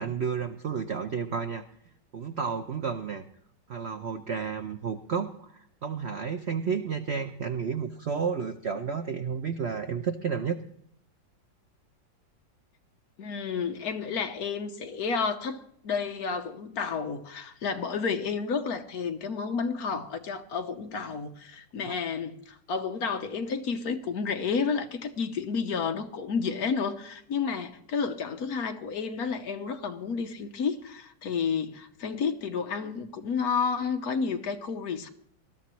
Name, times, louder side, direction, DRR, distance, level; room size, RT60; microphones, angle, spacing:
voice 1, 0.0-1.6 2.1-3.2 3.7-10.6, right 6 dB, 85° right, 0.5 m, -31 dB
voice 2, 13.2-35.1, left 5 dB, 60° left, 1.3 m, -31 dB
19.5 x 13.0 x 3.1 m
omnidirectional pair, 2.1 m